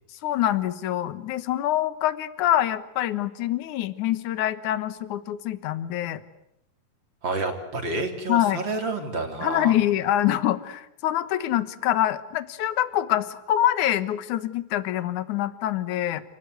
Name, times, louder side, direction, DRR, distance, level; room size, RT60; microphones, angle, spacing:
voice 1, 0.2-6.2 8.3-8.6 9.4-16.2, left 12 dB, 65° left, 13 dB, 2.5 m, -25 dB
voice 2, 7.2-9.8, right 3 dB, 30° right, 4 dB, 4.0 m, -29 dB
29.0 x 20.0 x 9.5 m, 0.81 s
omnidirectional pair, 4.1 m